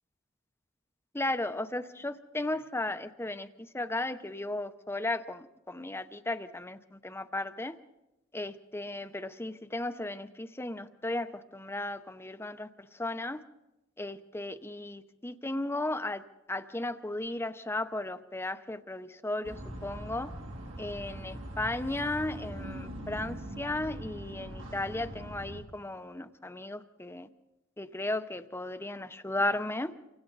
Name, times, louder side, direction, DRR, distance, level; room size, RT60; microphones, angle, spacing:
voice 1, 1.1-7.7 8.3-12.7 12.9-13.4 14.0-16.2 16.5-19.6 19.8-20.3 20.8-27.3 27.8-29.9, left 2 dB, 10° left, 11 dB, 0.8 m, -35 dB
sound 1, 19.4-25.6, right 1 dB, 85° right, 3.1 m, -42 dB
29.5 x 24.5 x 4.0 m, 0.94 s
head